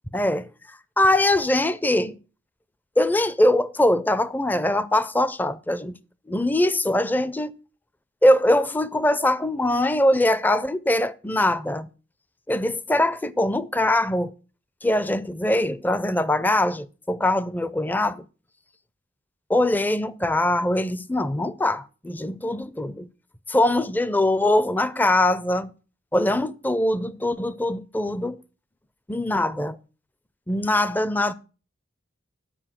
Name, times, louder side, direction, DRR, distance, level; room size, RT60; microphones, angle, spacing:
voice 1, 0.1-0.5 1.0-2.2 3.0-5.9 6.3-7.5 8.2-11.9 12.5-14.3 14.8-18.2 19.5-23.1 23.5-25.7 26.1-28.4 29.1-29.8 30.5-31.3, left 1 dB, 10° left, 0.4 m, -22 dB
10.0 x 5.1 x 7.5 m
head